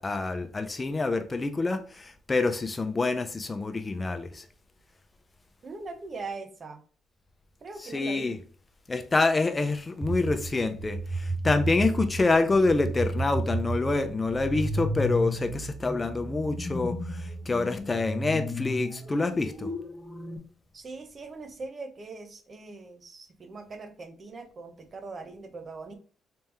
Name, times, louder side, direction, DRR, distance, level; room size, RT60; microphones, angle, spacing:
voice 1, 0.0-4.5 7.8-8.4 8.9-19.7, left 3 dB, 25° left, 0.5 m, -27 dB
voice 2, 5.6-6.8 7.6-8.4 20.7-26.0, right 3 dB, 40° right, 0.8 m, -41 dB
sound 1, 10.0-20.4, right 1 dB, 5° left, 0.9 m, -33 dB
3.4 x 3.3 x 3.0 m
cardioid pair, 90°, 0 cm